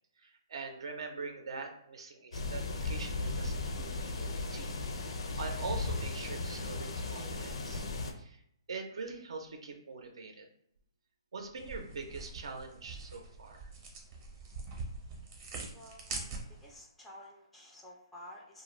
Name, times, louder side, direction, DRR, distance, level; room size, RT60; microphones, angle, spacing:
voice 1, 0.2-4.7 5.4-7.8 8.2-8.4 8.7-10.5 11.3-13.7, right 4 dB, 70° right, 4 dB, 0.5 m, -43 dB
sound 1, 2.3-8.1, left 3 dB, 75° left, 0.5 m, -36 dB
sound 2, 11.6-16.8, right 3 dB, 25° right, 0.7 m, -44 dB
voice 2, 15.7-18.6, left 1 dB, ahead, -2 dB, 0.3 m, -52 dB
2.5 x 2.2 x 3.0 m, 0.71 s
hypercardioid pair, 155°, 3 cm